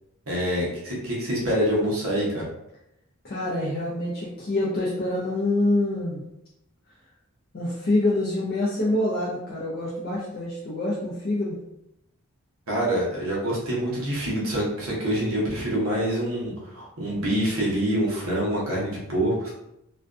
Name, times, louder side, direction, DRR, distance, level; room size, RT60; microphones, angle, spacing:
voice 1, 0.3-2.5 12.7-19.5, equal, 75° right, -4 dB, 0.8 m, -26 dB
voice 2, 3.2-6.2 7.5-11.6, left 1 dB, 45° left, -6 dB, 0.4 m, -26 dB
2.4 x 2.2 x 2.4 m, 0.82 s
head